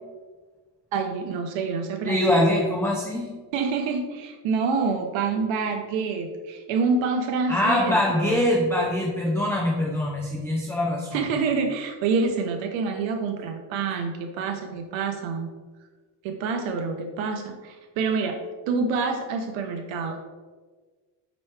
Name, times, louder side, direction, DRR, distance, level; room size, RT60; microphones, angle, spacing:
voice 1, 0.9-2.5 3.5-8.4 11.1-15.5 16.2-20.2, right 4 dB, 70° right, 5 dB, 0.6 m, -27 dB
voice 2, 2.1-3.3 7.5-11.3, left 1 dB, 5° left, -3 dB, 0.3 m, -23 dB
5.5 x 3.0 x 3.2 m, 1.4 s
cardioid pair, 130°, 47 cm